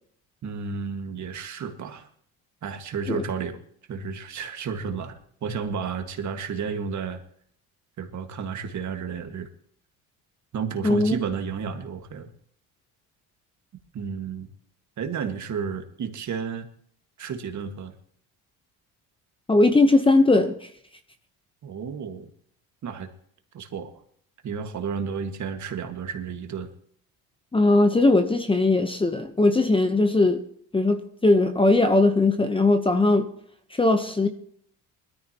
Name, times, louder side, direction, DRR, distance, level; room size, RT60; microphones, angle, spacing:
voice 1, 0.4-2.1 2.6-3.6 3.9-7.2 8.0-9.5 10.5-12.3 13.9-14.5 15.0-16.7 17.2-17.9 21.6-22.3 22.8-23.1 23.5-24.0 24.4-26.7, right 6 dB, 45° right, 6 dB, 1.8 m, -32 dB
voice 2, 10.8-11.1 19.5-20.5 27.5-30.4 30.7-33.3 33.8-34.3, left 2 dB, 15° left, 8 dB, 0.9 m, -19 dB
20.5 x 13.5 x 3.0 m, 0.62 s
cardioid pair, 115°, 39 cm